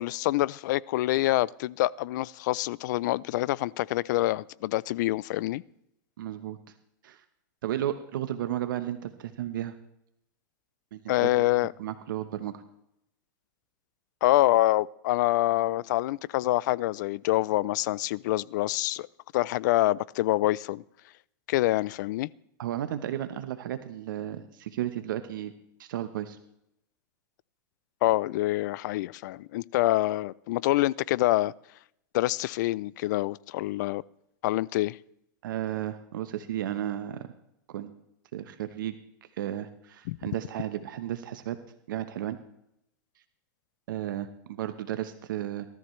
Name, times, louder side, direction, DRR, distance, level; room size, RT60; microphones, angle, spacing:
voice 1, 0.0-5.6 11.1-11.7 14.2-19.1 19.3-20.8 21.5-22.3 28.0-31.5 32.1-34.0 34.4-35.0 40.1-40.2, left 17 dB, 65° left, 0.4 m, -26 dB
voice 2, 6.2-6.6 7.0-7.2 7.6-9.7 10.9-11.3 11.8-12.6 22.6-25.5 25.8-26.4 35.4-37.3 37.7-37.9 38.3-38.9 39.4-41.6 41.9-42.4 43.9-45.7, right 12 dB, 80° right, 1.1 m, -33 dB
19.0 x 13.0 x 3.2 m
supercardioid pair, 135°, 11 cm